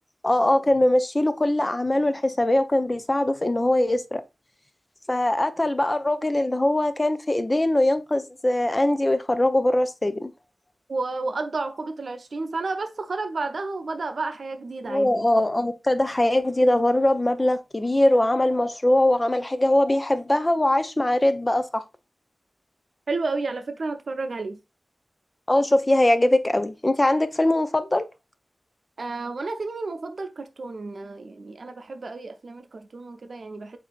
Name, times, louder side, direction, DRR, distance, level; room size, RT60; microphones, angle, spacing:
voice 1, 0.2-4.2 5.1-10.3 14.9-21.8 25.5-28.0, left 1 dB, 25° left, 0.5 m, -21 dB
voice 2, 10.9-15.3 23.1-24.6 29.0-33.8, right 3 dB, 70° right, 0.6 m, -31 dB
7.3 x 2.7 x 2.4 m
wide cardioid pair, 75°, 0 cm